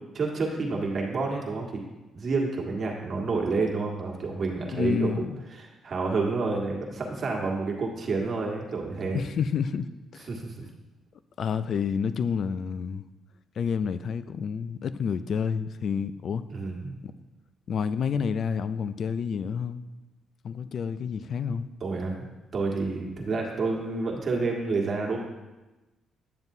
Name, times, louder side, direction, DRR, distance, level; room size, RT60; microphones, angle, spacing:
voice 1, 0.1-1.8 2.1-5.2 5.5-9.2 10.3-10.6 16.5-17.0 21.8-22.3 22.5-25.2, right 3 dB, 45° right, 1.7 m, -29 dB
voice 2, 4.7-5.4 9.1-10.3 11.4-13.0 13.6-16.5 17.0-17.1 17.7-19.8 20.4-21.7, left 6 dB, 60° left, 0.4 m, -29 dB
9.5 x 7.1 x 2.7 m
cardioid pair, 90°, 0 cm